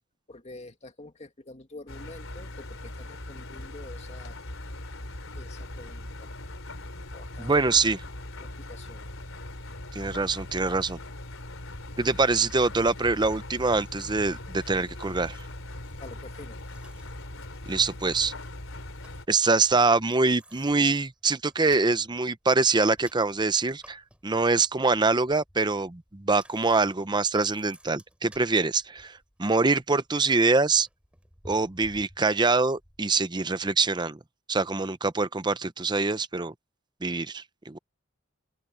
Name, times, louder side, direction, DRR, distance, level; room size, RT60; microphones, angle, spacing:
voice 1, 0.3-4.4 5.4-6.3 7.1-7.8 8.4-9.1 16.0-16.6, left 2 dB, 35° left, 2.2 m, -46 dB
Engine, 1.9-19.3, left 1 dB, 85° left, 3.5 m, -40 dB
voice 2, 7.4-8.0 9.9-11.0 12.0-15.4 17.7-18.3 19.3-30.9 31.4-34.2 34.5-36.5 37.0-37.8, right 3 dB, 20° right, 0.7 m, -24 dB
Bicycle, 14.6-33.0, right 1 dB, 5° right, 6.0 m, -56 dB
open air
head